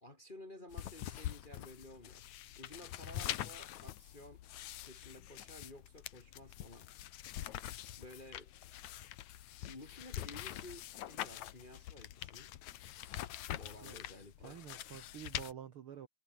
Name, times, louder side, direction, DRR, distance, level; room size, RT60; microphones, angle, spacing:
voice 1, 0.0-2.3 2.6-4.4 4.8-6.9 8.0-8.5 9.6-12.5 13.5-14.6, left 1 dB, 30° left, 0.9 m, -53 dB
sound 1, 0.7-15.5, left 13 dB, 65° left, 2.0 m, -45 dB
voice 2, 14.4-16.1, right 9 dB, 80° right, 1.2 m, -49 dB
omnidirectional pair, 4.4 m